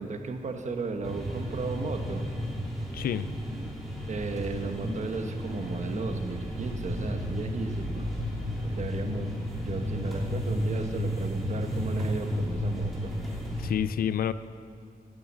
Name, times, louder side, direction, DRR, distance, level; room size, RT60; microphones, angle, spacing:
voice 1, 0.0-2.2 4.1-8.1 8.6-13.1, right 3 dB, 50° right, 5 dB, 1.2 m, -35 dB
sound 1, 1.0-13.7, equal, ahead, 2.8 m, -32 dB
voice 2, 2.9-3.3 13.6-14.3, left 10 dB, 75° left, 15 dB, 0.4 m, -28 dB
10.5 x 10.5 x 7.4 m, 2.3 s
wide cardioid pair, 110°, 15 cm